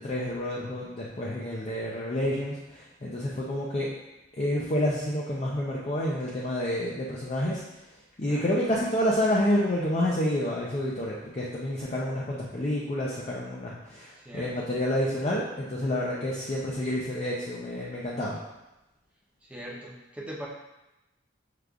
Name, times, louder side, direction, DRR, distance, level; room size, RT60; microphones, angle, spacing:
voice 1, 0.0-3.9 4.3-7.6 8.2-18.4, left 1 dB, 35° left, -5 dB, 0.4 m, -29 dB
voice 2, 14.2-14.7 19.4-20.5, equal, 5° right, -4 dB, 0.6 m, -41 dB
6.4 x 2.4 x 2.3 m, 0.98 s
head